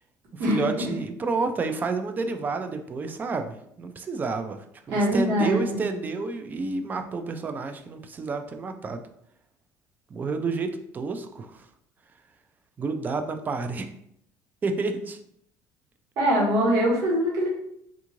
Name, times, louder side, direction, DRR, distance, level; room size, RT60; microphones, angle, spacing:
voice 1, 0.3-4.6 4.9-9.0 10.1-11.6 12.8-13.9 14.6-15.2, right 4 dB, 25° right, 7 dB, 0.3 m, -30 dB
voice 2, 4.9-5.8 16.2-17.5, equal, 70° right, -4 dB, 1.4 m, -23 dB
3.5 x 2.4 x 3.0 m, 0.72 s
cardioid pair, 130°, 7 cm